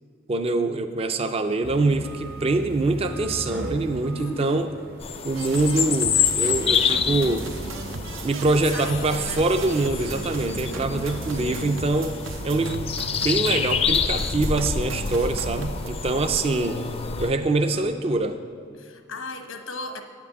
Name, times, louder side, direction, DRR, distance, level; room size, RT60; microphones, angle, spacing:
voice 1, 0.3-4.7 5.2-7.5 8.2-12.2 12.4-16.8 17.2-18.4, right 2 dB, 30° right, 7 dB, 0.4 m, -24 dB
sound 1, 1.6-17.8, right 1 dB, 50° right, 0.8 m, -41 dB
voice 2, 4.1-4.6 8.7-9.4 10.0-10.8 16.4-17.0 18.8-20.0, left 2 dB, 85° left, 6 dB, 1.0 m, -37 dB
sound 2, 5.0-17.3, left 6 dB, 30° left, 0.4 m, -28 dB
sound 3, 5.3-15.9, right 3 dB, 80° right, 0.6 m, -36 dB
9.2 x 5.9 x 8.2 m, 2.4 s
head